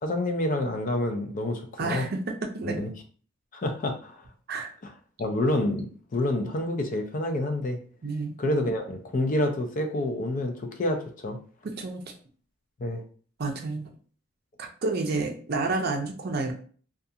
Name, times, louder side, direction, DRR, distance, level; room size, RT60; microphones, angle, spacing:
voice 1, 0.0-2.1 2.6-2.9 3.5-4.3 5.2-7.8 8.4-11.4 12.8-13.0, left 1 dB, 40° left, 5 dB, 0.4 m, -28 dB
voice 2, 1.8-2.8 4.5-4.7 8.0-8.3 11.6-12.0 13.4-13.9 14.6-16.5, right 3 dB, 50° right, 3 dB, 0.5 m, -30 dB
2.4 x 2.3 x 2.7 m, 0.43 s
head